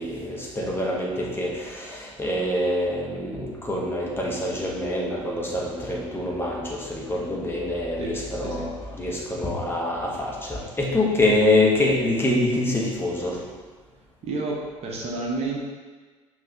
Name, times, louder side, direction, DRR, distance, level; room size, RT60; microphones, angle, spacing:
voice 1, 0.0-13.4, left 1 dB, 15° left, -3 dB, 1.1 m, -25 dB
voice 2, 8.0-8.7 14.2-15.6, right 3 dB, 40° right, -2 dB, 0.9 m, -30 dB
5.7 x 2.7 x 3.4 m, 1.4 s
figure-of-eight pair, 60°, 17 cm